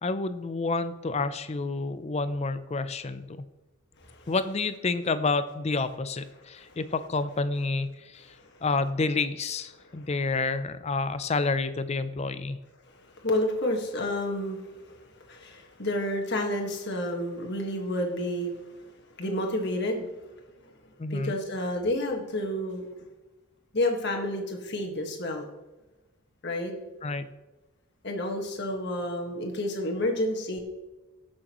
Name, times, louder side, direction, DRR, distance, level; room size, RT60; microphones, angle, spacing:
voice 1, 0.0-3.2 4.3-8.3 8.6-12.6 21.0-21.4 27.0-27.3, left 3 dB, 30° left, 13 dB, 0.5 m, -29 dB
voice 2, 13.2-15.0 15.3-18.5 19.2-20.1 21.1-22.8 23.7-25.5 26.4-26.7 28.0-30.6, left 1 dB, 50° left, 1 dB, 1.6 m, -30 dB
16.5 x 6.4 x 3.0 m, 1.1 s
head